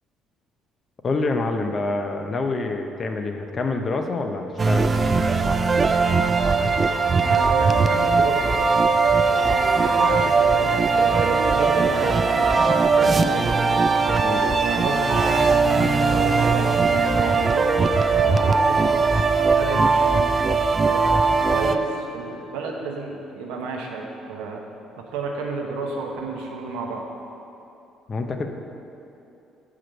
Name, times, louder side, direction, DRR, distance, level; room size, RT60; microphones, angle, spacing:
voice 1, 1.0-4.9 14.2-14.6 18.2-18.5 28.1-28.5, left 3 dB, 40° left, 4 dB, 0.7 m, -27 dB
sound 1, 4.6-21.8, right 4 dB, 35° right, 0.4 m, -19 dB
voice 2, 7.2-8.6 9.3-13.6 14.6-17.7 18.3-18.9 19.5-20.3 20.8-24.6 25.0-27.1, right 4 dB, 85° right, 0 dB, 0.9 m, -31 dB
6.0 x 4.9 x 6.6 m, 2.8 s
supercardioid pair, 70°, 0 cm